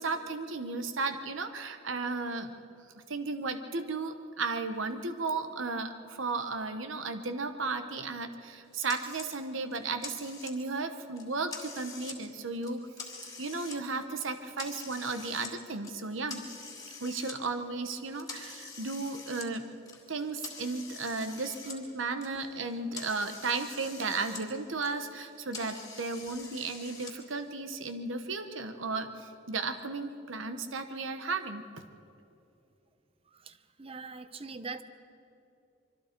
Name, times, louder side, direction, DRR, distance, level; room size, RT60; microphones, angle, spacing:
voice 1, 0.0-2.5 3.1-12.8 13.4-16.4 17.0-19.6 20.1-31.6, right 3 dB, 70° right, 8 dB, 1.0 m, -34 dB
sound 1, 8.9-9.3 9.7-10.8 11.2-12.2 12.5-13.8 14.2-15.5 15.8-17.3 17.9-21.8 22.1-24.4 24.7-27.1, left 4 dB, 20° left, 2.4 m, -45 dB
voice 2, 33.3-34.8, right 4 dB, 30° right, 11 dB, 0.7 m, -43 dB
24.5 x 24.5 x 4.5 m, 2.7 s
head